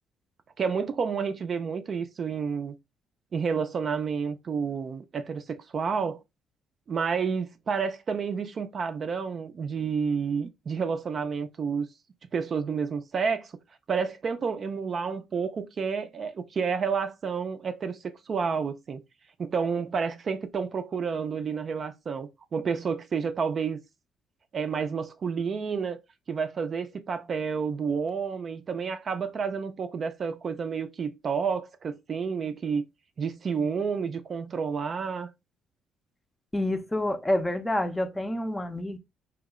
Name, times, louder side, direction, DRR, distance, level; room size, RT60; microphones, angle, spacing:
voice 1, 0.6-2.8 3.3-6.2 6.9-11.9 12.3-13.5 13.9-19.0 19.4-23.8 24.5-26.0 26.3-32.8 33.2-35.3, right 6 dB, 50° right, 0.4 m, -30 dB
voice 2, 36.5-39.0, left 1 dB, 15° left, 0.5 m, -28 dB
2.9 x 2.0 x 3.5 m
supercardioid pair, 70°, 0 cm